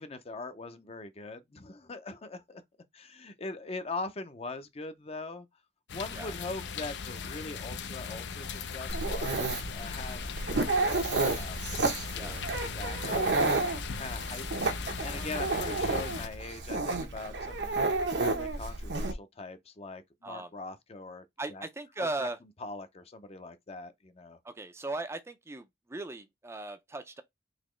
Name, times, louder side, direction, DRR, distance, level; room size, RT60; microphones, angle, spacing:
voice 1, 0.0-2.6 2.9-5.5 5.9-11.6 12.1-13.7 13.9-14.5 14.8-21.7 22.0-22.3 22.6-24.4, left 3 dB, 35° left, 0.6 m, -42 dB
sound 1, 5.9-16.3, left 5 dB, 80° left, 0.6 m, -38 dB
Dog, 8.9-19.1, right 3 dB, 75° right, 0.9 m, -31 dB
voice 2, 21.4-22.4 24.4-27.2, right 2 dB, 15° right, 0.4 m, -38 dB
4.1 x 3.0 x 3.1 m
head